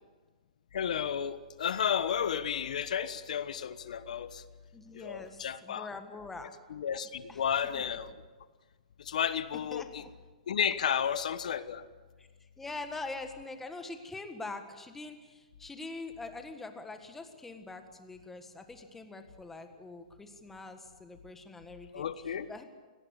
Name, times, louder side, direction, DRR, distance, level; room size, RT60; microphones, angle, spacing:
voice 1, 0.7-4.4 4.9-5.9 6.7-8.1 9.0-10.0 10.5-11.8 21.9-22.5, left 8 dB, 70° left, 13 dB, 1.2 m, -32 dB
voice 2, 4.7-6.5 7.3-7.4 7.9-8.0 9.7-10.1 12.2-12.3 12.6-22.1 22.5-22.7, left 3 dB, 5° left, 7 dB, 1.7 m, -44 dB
23.5 x 18.5 x 8.2 m, 1.4 s
hypercardioid pair, 160°, 4 cm